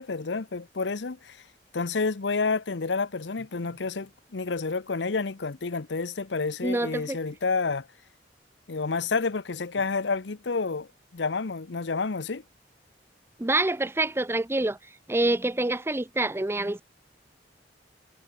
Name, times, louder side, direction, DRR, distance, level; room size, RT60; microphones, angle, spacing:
voice 1, 0.0-1.4 1.7-7.9 8.7-12.4, left 4 dB, 90° left, 0.8 m, -29 dB
voice 2, 6.6-7.2 13.4-14.8 15.1-16.8, right 2 dB, 15° right, 0.6 m, -26 dB
head